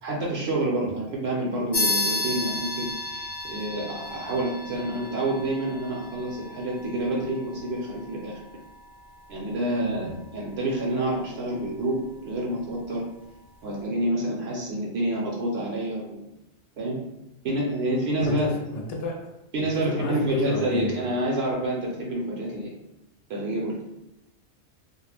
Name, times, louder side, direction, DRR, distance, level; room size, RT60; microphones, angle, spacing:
voice 1, 0.0-8.4 9.3-13.1 13.6-16.2 16.8-17.0 17.4-18.6 19.5-22.7 23.3-23.8, right 1 dB, 70° right, -3 dB, 0.8 m, -28 dB
sound 1, 1.7-11.7, left 2 dB, 50° left, 0.5 m, -34 dB
voice 2, 18.2-19.3 19.7-21.0, left 2 dB, 80° left, 1 dB, 0.9 m, -30 dB
2.3 x 2.1 x 3.2 m, 0.89 s
omnidirectional pair, 1.2 m